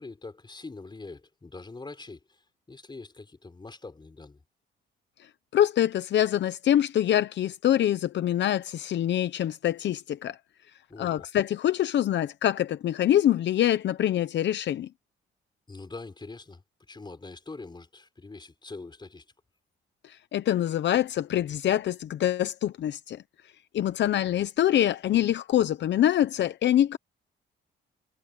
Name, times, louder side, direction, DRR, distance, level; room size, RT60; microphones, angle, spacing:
voice 1, 0.0-2.4 2.7-4.4 10.9-11.2 15.7-16.6 16.9-19.2, left 3 dB, 20° left, 4.8 m, -43 dB
voice 2, 5.5-10.4 11.0-14.9 20.0-23.2 23.7-27.0, left 11 dB, 65° left, 0.9 m, -25 dB
cardioid pair, 90°, 20 cm